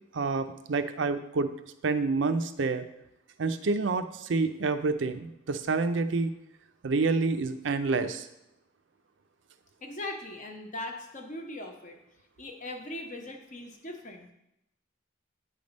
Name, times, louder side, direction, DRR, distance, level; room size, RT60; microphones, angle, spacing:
voice 1, 0.1-1.5 1.8-2.8 3.4-6.3 6.8-8.3, right 3 dB, 75° right, 9 dB, 0.5 m, -28 dB
voice 2, 9.8-12.0 12.4-14.3, left 2 dB, 40° left, 3 dB, 0.9 m, -40 dB
8.8 x 3.4 x 5.2 m, 0.87 s
head